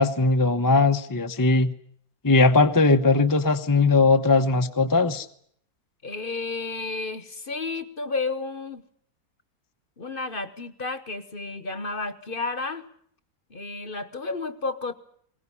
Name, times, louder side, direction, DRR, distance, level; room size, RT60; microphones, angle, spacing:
voice 1, 0.0-1.7 2.2-5.3, left 3 dB, 15° left, 7 dB, 0.8 m, -19 dB
voice 2, 6.0-8.8 10.0-12.9 13.5-14.9, left 3 dB, 40° left, 12 dB, 1.2 m, -32 dB
21.5 x 19.0 x 9.8 m, 0.65 s
omnidirectional pair, 1.6 m